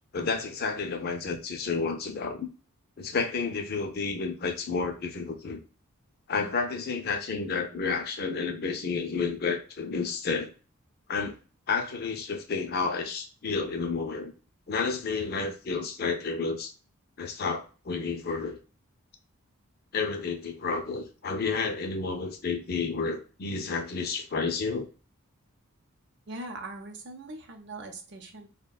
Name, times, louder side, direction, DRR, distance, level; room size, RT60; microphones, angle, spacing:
voice 1, 0.1-2.5 3.0-5.6 6.3-10.5 11.1-11.4 11.7-14.3 14.7-16.7 17.2-18.6 19.9-24.9, left 4 dB, 45° left, 4 dB, 0.5 m, -31 dB
voice 2, 26.3-28.5, right 2 dB, 50° right, 4 dB, 0.6 m, -41 dB
3.5 x 2.1 x 2.2 m, 0.35 s
head